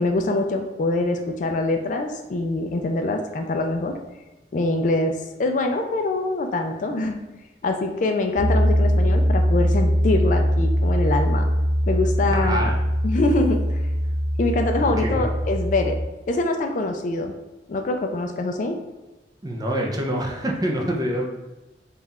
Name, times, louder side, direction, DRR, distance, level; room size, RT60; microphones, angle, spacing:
voice 1, 0.0-4.0 4.5-7.2 7.6-11.5 11.9-12.7 13.0-13.8 14.4-16.0 16.3-17.3 17.7-18.8, left 2 dB, 45° left, 5 dB, 0.3 m, -24 dB
Piano, 8.4-16.0, equal, 30° left, 1.3 m, -21 dB
voice 2, 12.3-12.8 14.8-15.3 19.4-21.3, right 1 dB, 20° right, 1 dB, 0.5 m, -26 dB
3.7 x 2.4 x 4.1 m, 1.1 s
head